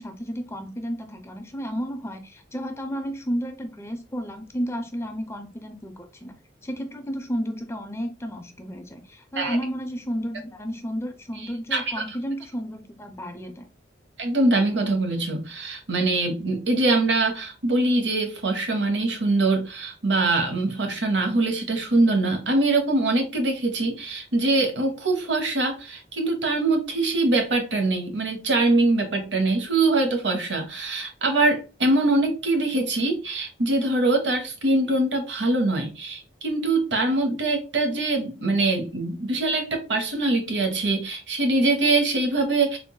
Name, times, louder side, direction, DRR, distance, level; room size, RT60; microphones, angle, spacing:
voice 1, 0.0-6.4 6.6-13.7, equal, 15° left, 0.5 m, -32 dB
voice 2, 11.7-12.0 14.2-42.8, right 2 dB, 70° right, 0.9 m, -23 dB
3.7 x 3.6 x 2.2 m
head